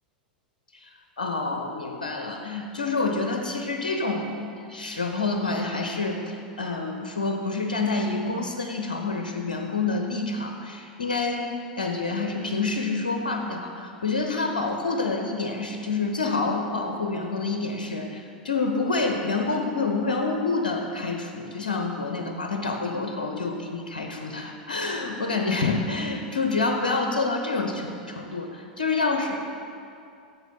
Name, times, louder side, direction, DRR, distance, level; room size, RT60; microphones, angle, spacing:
voice 1, 1.2-29.4, left 3 dB, 75° left, 3 dB, 0.6 m, -28 dB
8.0 x 6.6 x 3.8 m, 2.5 s
figure-of-eight pair, 90°, 5 cm